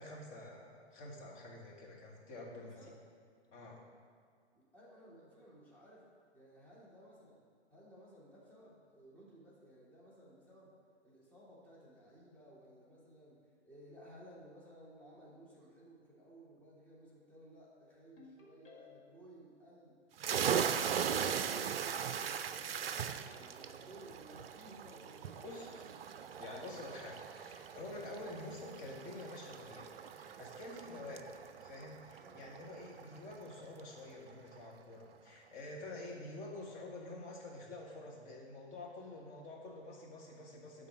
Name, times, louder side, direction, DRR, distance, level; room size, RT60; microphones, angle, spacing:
voice 1, 0.0-2.8 3.5-3.8 25.4-25.9 26.4-40.9, left 2 dB, 25° left, -2 dB, 1.5 m, -48 dB
voice 2, 2.5-3.0 4.5-6.1 6.3-7.5 7.7-10.7 11.0-20.0 20.3-25.6 32.2-32.5, right 1 dB, 5° left, -7 dB, 1.7 m, -58 dB
Ringtone, 18.2-19.3, left 5 dB, 50° left, 1.8 m, -58 dB
sound 1, 20.2-33.5, right 8 dB, 60° right, 0.5 m, -39 dB
10.5 x 3.9 x 6.2 m, 2.1 s
figure-of-eight pair, 120°, 34 cm